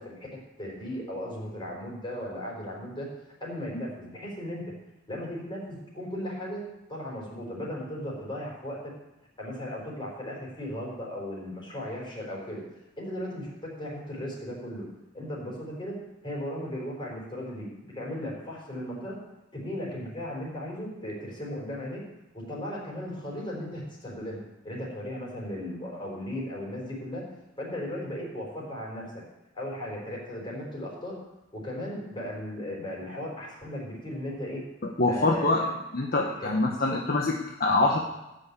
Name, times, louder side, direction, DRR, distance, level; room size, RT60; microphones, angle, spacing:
voice 1, 0.0-3.1 3.4-4.6 5.1-6.6 6.9-8.9 9.4-12.6 13.0-14.8 15.1-16.0 16.2-19.1 19.5-22.0 22.3-27.2 27.6-29.2 29.5-31.2 31.5-34.6 35.1-35.7 36.1-37.0, left 1 dB, 25° left, -4 dB, 5.0 m, -36 dB
voice 2, 35.0-35.6 35.9-37.3 37.6-38.0, left 2 dB, 50° left, -1 dB, 1.3 m, -24 dB
14.0 x 6.5 x 8.5 m, 0.94 s
head